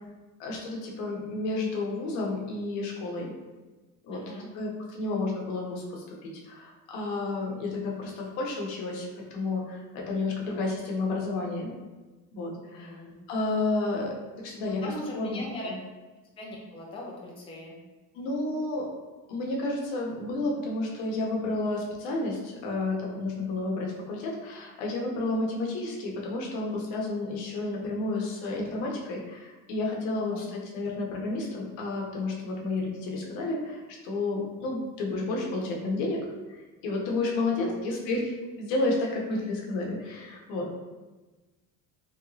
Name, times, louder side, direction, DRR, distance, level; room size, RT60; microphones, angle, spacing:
voice 1, 0.4-3.3 4.0-4.2 4.5-11.7 12.3-13.0 13.3-14.8 15.1-15.7 18.1-18.9 19.3-38.3 38.6-40.7, left 2 dB, 80° left, -1 dB, 0.9 m, -31 dB
voice 2, 4.1-4.5 10.5-10.7 12.8-13.1 14.8-15.7 16.4-17.8 30.1-30.5 37.5-37.7 39.3-39.4, left 1 dB, 15° left, -3 dB, 0.5 m, -40 dB
3.4 x 2.9 x 2.7 m, 1.2 s
cardioid pair, 130°, 44 cm